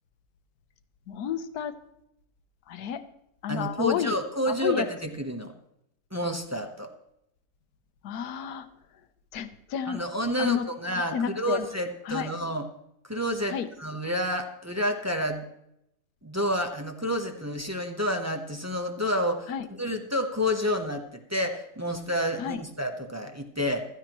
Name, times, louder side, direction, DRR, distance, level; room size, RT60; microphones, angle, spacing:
voice 1, 1.1-1.7 2.7-3.0 3.4-4.2 4.5-4.9 8.0-8.7 9.3-10.0 10.4-10.7 11.1-11.6 12.1-12.3 13.5-13.7 19.5-19.6 22.4-22.6, left 8 dB, 80° left, 10 dB, 1.3 m, -30 dB
voice 2, 3.5-5.5 6.1-6.9 9.8-12.7 13.0-15.5 16.2-23.9, equal, 15° right, 4 dB, 0.8 m, -29 dB
15.0 x 14.0 x 3.0 m, 0.79 s
omnidirectional pair, 1.7 m